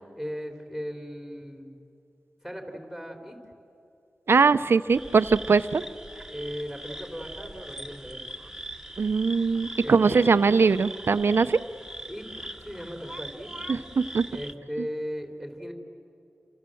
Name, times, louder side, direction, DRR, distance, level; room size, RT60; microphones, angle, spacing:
voice 1, 0.2-1.8 2.4-3.4 6.3-8.2 9.8-10.4 12.0-13.5 14.3-15.7, equal, 5° left, 3 dB, 3.7 m, -37 dB
voice 2, 4.3-5.8 9.0-11.6 13.7-14.3, right 5 dB, 75° right, 12 dB, 0.6 m, -21 dB
sound 1, 4.9-14.5, right 1 dB, 10° right, 1.7 m, -41 dB
29.0 x 26.0 x 7.8 m, 2.7 s
wide cardioid pair, 60°, 4 cm